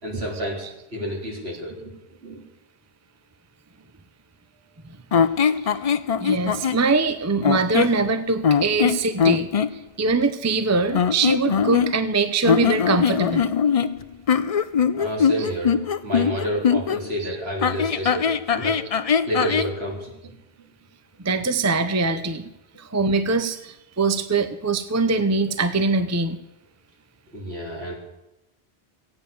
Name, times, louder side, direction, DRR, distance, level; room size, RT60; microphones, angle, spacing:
voice 1, 0.0-1.9 2.2-2.4 14.9-18.8 19.3-20.3 27.3-27.9, right 1 dB, 70° right, -2 dB, 3.9 m, -30 dB
sound 1, 5.1-6.8 7.4-8.0 8.4-9.7 10.9-12.1 12.4-17.0 17.6-19.7, left 7 dB, 45° left, 0.5 m, -21 dB
voice 2, 6.2-9.5 10.0-13.5 15.4-15.5 17.2-17.4 18.0-18.1 19.5-19.6 21.2-22.5 22.8-26.4, right 3 dB, 20° right, 10 dB, 0.6 m, -23 dB
15.5 x 9.0 x 7.0 m, 0.88 s
omnidirectional pair, 1.1 m